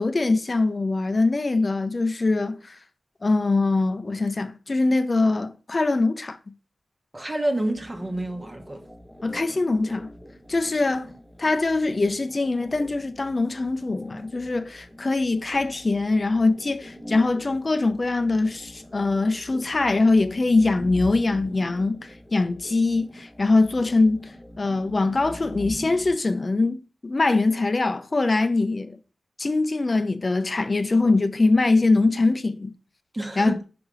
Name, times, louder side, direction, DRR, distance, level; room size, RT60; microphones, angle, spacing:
voice 1, 0.0-2.8 3.2-6.4 9.2-10.1 10.5-11.1 11.4-29.0 29.4-32.7 33.4-33.6, left 3 dB, 40° left, 0.7 m, -23 dB
voice 2, 7.1-8.8 33.1-33.6, right 1 dB, 25° right, 1.1 m, -28 dB
sound 1, 7.7-26.2, equal, 5° left, 1.5 m, -42 dB
5.2 x 4.8 x 6.1 m
wide cardioid pair, 70°, 0 cm